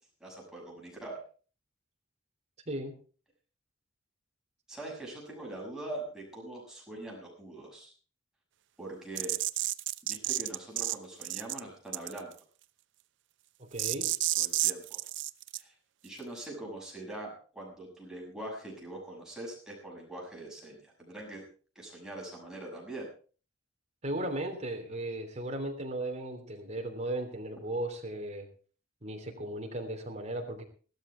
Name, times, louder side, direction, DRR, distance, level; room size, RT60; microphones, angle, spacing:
voice 1, 0.2-1.2 4.7-7.9 8.8-9.4 10.0-12.3 14.4-15.0 15.6-15.7 16.0-21.4 21.7-23.1, right 1 dB, 5° right, -3 dB, 6.7 m, -43 dB
sound 1, 9.1-10.9 11.2-11.6 11.9-12.3 13.8-15.6, right 17 dB, 65° right, 0.6 m, -30 dB
voice 2, 13.6-14.1 24.0-28.5 29.0-30.6, right 1 dB, 35° right, 3 dB, 3.1 m, -36 dB
16.0 x 13.0 x 4.5 m, 0.39 s
head